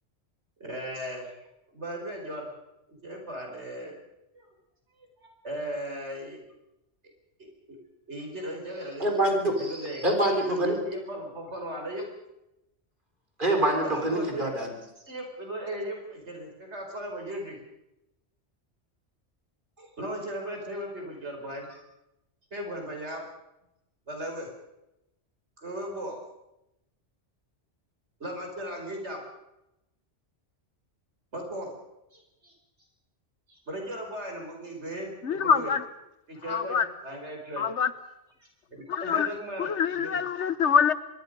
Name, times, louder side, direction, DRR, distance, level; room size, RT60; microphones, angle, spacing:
voice 1, 0.6-2.5 2.9-4.0 4.3-4.5 5.0-6.4 7.4-7.8 8.1-9.1 9.6-10.1 10.5-12.1 13.8-14.5 15.1-17.6 19.8-21.8 22.5-23.2 24.1-24.5 25.6-26.2 28.2-29.2 31.3-31.7 32.1-32.6 33.5-35.7 36.3-37.7 38.4-40.2, right 1 dB, 70° right, 2 dB, 5.2 m, -37 dB
voice 2, 9.0-10.8 13.4-14.7, right 1 dB, 45° right, 3 dB, 4.0 m, -25 dB
voice 3, 35.2-35.8 36.5-36.8 37.6-37.9 38.9-39.3 39.6-40.9, left 7 dB, 75° left, 14 dB, 1.3 m, -25 dB
25.0 x 22.0 x 5.4 m, 0.88 s
omnidirectional pair, 1.2 m